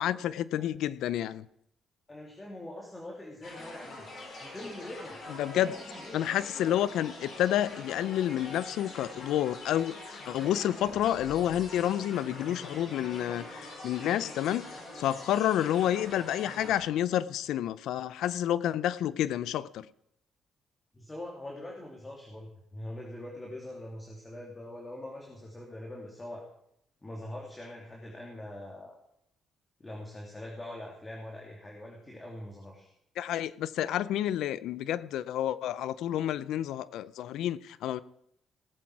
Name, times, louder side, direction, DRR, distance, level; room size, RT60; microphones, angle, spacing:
voice 1, 0.0-1.5 5.4-5.7 6.1-14.6 15.0-19.9 33.2-38.0, left 11 dB, 85° left, 0.5 m, -29 dB
voice 2, 2.1-4.0 4.5-5.2 5.5-6.2 10.7-10.8 20.9-26.5 27.0-29.0 29.8-32.9, left 1 dB, 20° left, 2.7 m, -43 dB
sound 1, 3.4-16.8, left 2 dB, 60° left, 6.0 m, -44 dB
18.0 x 7.7 x 4.7 m
cardioid pair, 90°, 0 cm